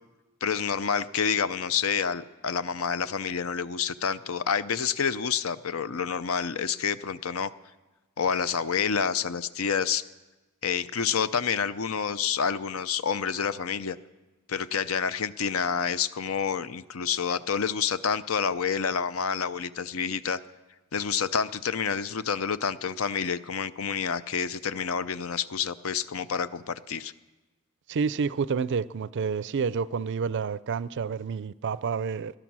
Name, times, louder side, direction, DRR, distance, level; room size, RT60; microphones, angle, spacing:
voice 1, 0.4-7.5 8.2-10.0 10.6-14.0 14.5-20.4 20.9-27.1, left 6 dB, 75° left, 0.6 m, -28 dB
voice 2, 27.9-32.3, right 5 dB, 55° right, 0.4 m, -29 dB
19.0 x 12.0 x 6.2 m
head